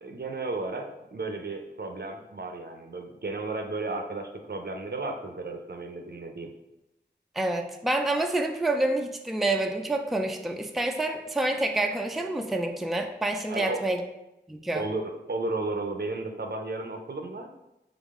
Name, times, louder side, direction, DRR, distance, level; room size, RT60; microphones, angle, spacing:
voice 1, 0.0-6.5 13.5-13.8 14.7-17.5, right 3 dB, 60° right, 4 dB, 0.6 m, -34 dB
voice 2, 7.3-14.0 14.5-14.9, right 2 dB, ahead, 4 dB, 0.4 m, -28 dB
3.8 x 3.5 x 3.6 m, 0.93 s
wide cardioid pair, 40°, 19 cm